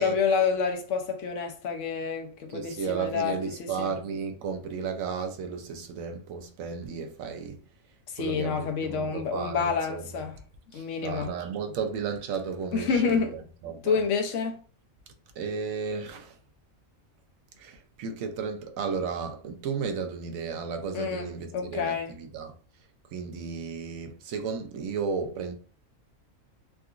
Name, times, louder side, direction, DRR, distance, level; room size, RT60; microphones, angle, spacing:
voice 1, 0.0-3.9 8.1-10.4 10.7-11.3 12.7-13.4 13.8-14.6 20.9-22.2, left 5 dB, 70° left, 1.0 m, -28 dB
voice 2, 2.5-7.6 8.2-10.2 10.7-13.2 13.6-14.0 15.4-16.3 17.6-22.5 23.1-25.5, right 5 dB, 80° right, 1.0 m, -34 dB
3.7 x 2.4 x 2.4 m
omnidirectional pair, 1.4 m